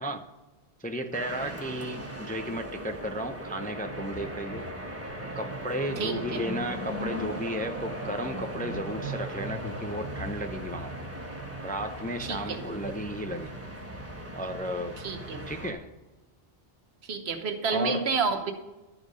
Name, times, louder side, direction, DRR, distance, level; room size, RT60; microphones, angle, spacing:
voice 1, 0.8-4.7 5.3-10.9 11.6-13.6 14.3-15.0 15.5-15.9 17.7-18.1, equal, 15° left, 6 dB, 0.4 m, -34 dB
sound 1, 1.1-15.7, right 1 dB, 15° right, 1.3 m, -37 dB
voice 2, 6.0-6.4 12.2-12.6 15.0-15.4 17.1-18.5, right 5 dB, 75° right, 7 dB, 1.2 m, -29 dB
12.0 x 5.0 x 5.3 m, 1.1 s
omnidirectional pair, 1.1 m